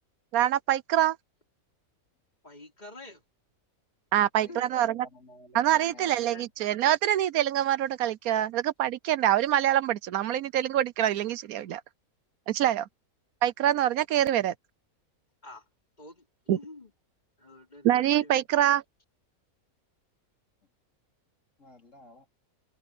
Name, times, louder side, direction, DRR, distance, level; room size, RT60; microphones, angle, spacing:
voice 1, 0.3-1.2 4.1-5.1 5.5-11.8 12.5-12.9 13.4-14.5 16.5-16.6 17.8-18.8, right 12 dB, 80° right, 1.1 m, -25 dB
voice 2, 2.4-3.2 4.5-4.7 6.3-6.5 15.4-15.6 16.0-16.9 17.4-18.3, left 2 dB, 30° left, 4.5 m, -47 dB
voice 3, 4.4-6.5 21.6-22.3, left 1 dB, 55° left, 3.7 m, -51 dB
omnidirectional pair, 1.5 m